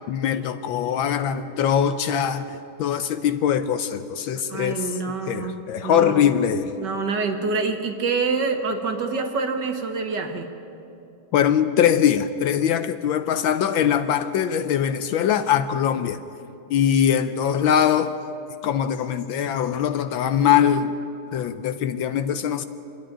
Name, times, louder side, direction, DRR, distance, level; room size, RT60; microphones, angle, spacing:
voice 1, 0.1-5.0 5.3-6.7 11.3-16.2 16.7-18.2 18.6-20.9 21.3-22.6, left 9 dB, 75° left, 11 dB, 1.3 m, -22 dB
voice 2, 4.5-5.6 5.8-6.3 6.8-10.5, right 4 dB, 55° right, 5 dB, 1.9 m, -26 dB
26.5 x 10.0 x 10.0 m, 2.8 s
omnidirectional pair, 2.4 m